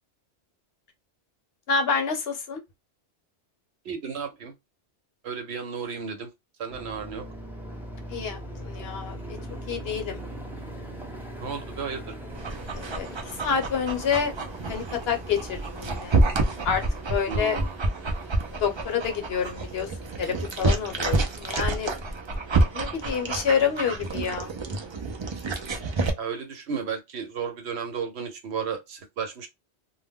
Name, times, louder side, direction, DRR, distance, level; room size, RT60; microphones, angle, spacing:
voice 1, 1.7-2.6 8.1-9.2 9.7-10.2 12.7-13.1 13.4-14.3 14.7-16.2 16.6-16.8 17.1-17.6 18.6-21.9 22.7-24.5, left 6 dB, 65° left, 0.9 m, -28 dB
voice 2, 3.8-4.5 5.2-6.3 6.6-7.2 11.4-12.2 17.3-17.8 26.2-29.5, right 6 dB, 75° right, 1.0 m, -33 dB
sound 1, 6.7-23.6, right 1 dB, ahead, 0.7 m, -41 dB
Dog, 12.3-26.1, right 2 dB, 45° right, 0.3 m, -28 dB
2.3 x 2.1 x 3.5 m
omnidirectional pair, 1.1 m